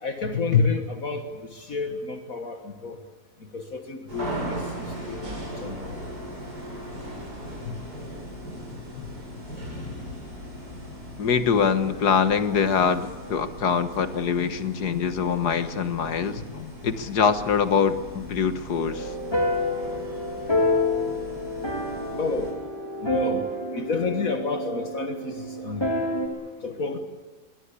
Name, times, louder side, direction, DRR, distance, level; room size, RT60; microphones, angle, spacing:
voice 1, 0.0-1.2 1.5-3.0 3.5-4.6 5.1-5.3 5.6-5.9 7.7-7.8 9.0-9.1 22.2-22.5 23.0-23.5 23.7-25.8 26.6-27.0, left 4 dB, 60° left, 6 dB, 1.9 m, -29 dB
sound 1, 4.1-22.5, equal, 80° right, 8.7 m, -38 dB
voice 2, 11.2-19.1, left 6 dB, 80° left, 10 dB, 1.9 m, -24 dB
sound 2, 18.9-26.3, left 1 dB, 15° left, 3.6 m, -28 dB
23.5 x 21.0 x 8.4 m, 1.3 s
omnidirectional pair, 1.7 m